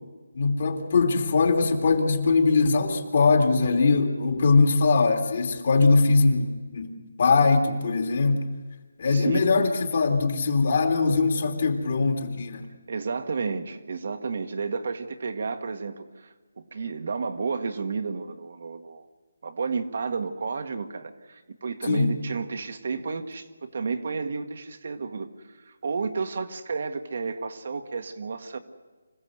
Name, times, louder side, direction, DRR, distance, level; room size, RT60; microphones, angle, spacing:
voice 1, 0.3-8.4 9.0-12.7 21.9-22.2, left 4 dB, 50° left, 3 dB, 2.9 m, -21 dB
voice 2, 9.1-9.7 12.9-19.1 19.4-28.6, right 4 dB, 55° right, 7 dB, 1.6 m, -32 dB
25.5 x 15.5 x 8.0 m, 1.3 s
figure-of-eight pair, 155°, 0 cm